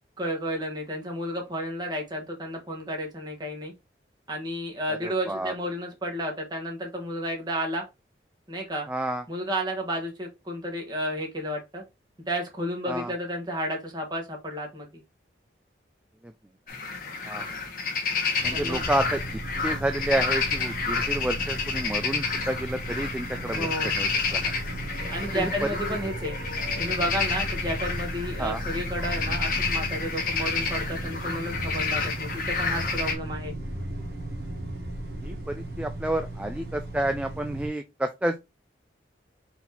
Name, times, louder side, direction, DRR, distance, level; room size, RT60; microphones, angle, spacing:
voice 1, 0.2-3.7 4.3-7.8 8.5-8.9 9.3-11.8 12.3-14.9 18.5-18.8 23.5-23.9 25.1-26.4 26.8-33.5, equal, 25° right, 1.3 m, -32 dB
voice 2, 4.9-5.5 8.9-9.2 12.9-13.1 16.2-16.3 17.3-17.5 18.4-19.2 19.6-24.5 25.3-25.7 28.4-28.6 35.2-38.4, right 1 dB, 5° right, 0.3 m, -30 dB
sound 1, 16.7-33.1, left 4 dB, 50° left, 1.2 m, -30 dB
sound 2, 18.4-37.7, right 1 dB, 55° right, 1.6 m, -35 dB
4.4 x 2.8 x 4.1 m
head